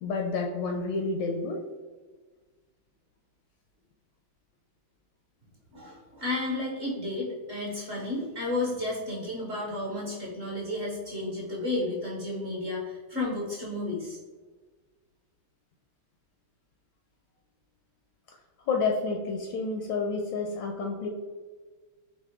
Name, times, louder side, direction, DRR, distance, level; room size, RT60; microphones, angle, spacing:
voice 1, 0.0-1.6 18.7-21.1, left 4 dB, 75° left, 1 dB, 1.1 m, -29 dB
voice 2, 5.7-14.2, left 2 dB, 40° right, -4 dB, 1.1 m, -32 dB
4.7 x 2.7 x 3.5 m, 1.3 s
omnidirectional pair, 2.3 m